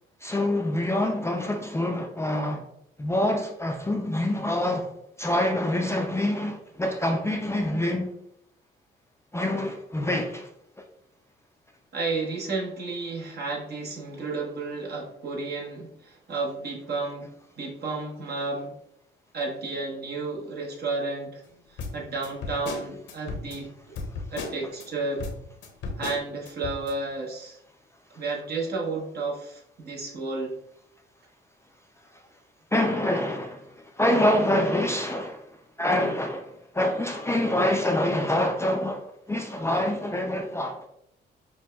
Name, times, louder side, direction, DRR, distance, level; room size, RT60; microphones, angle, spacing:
voice 1, 0.2-2.7 3.0-4.9 5.2-8.1 9.3-10.5 32.1-32.2 32.7-35.4 35.8-40.8, left 1 dB, 15° left, 0.4 m, -26 dB
voice 2, 11.9-17.3 17.6-18.8 19.3-21.4 21.7-23.7 24.3-25.3 26.0-27.6 28.1-30.5, right 3 dB, 55° right, 1.0 m, -32 dB
sound 1, 21.8-24.9 25.2-26.9, left 3 dB, 70° left, 0.7 m, -36 dB
5.8 x 2.2 x 2.2 m
cardioid pair, 90°, 20 cm